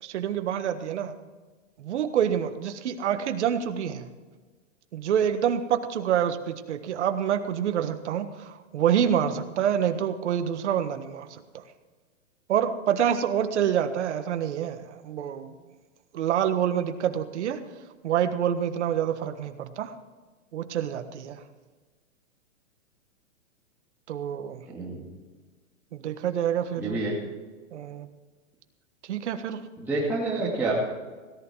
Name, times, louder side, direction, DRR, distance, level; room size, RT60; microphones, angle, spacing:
voice 1, 0.0-1.1 1.8-4.1 4.9-11.3 12.5-15.5 16.1-17.6 18.0-19.9 20.5-21.4 24.1-24.6 25.9-27.0 27.7-28.1 29.1-29.6, right 9 dB, 60° right, 8 dB, 1.5 m, -27 dB
voice 2, 24.7-25.1 26.8-27.1 29.8-30.7, right 3 dB, 5° right, -9 dB, 2.6 m, -28 dB
18.0 x 11.5 x 4.6 m, 1.3 s
hypercardioid pair, 155°, 39 cm